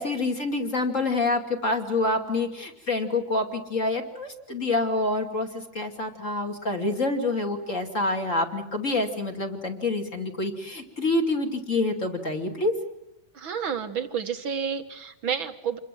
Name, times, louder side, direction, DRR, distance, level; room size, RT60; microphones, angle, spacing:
voice 1, 0.0-5.5 5.7-12.7, left 2 dB, 25° left, 4 dB, 2.6 m, -27 dB
voice 2, 13.3-15.8, right 7 dB, 55° right, 8 dB, 1.6 m, -30 dB
28.0 x 22.5 x 7.6 m, 0.93 s
omnidirectional pair, 3.5 m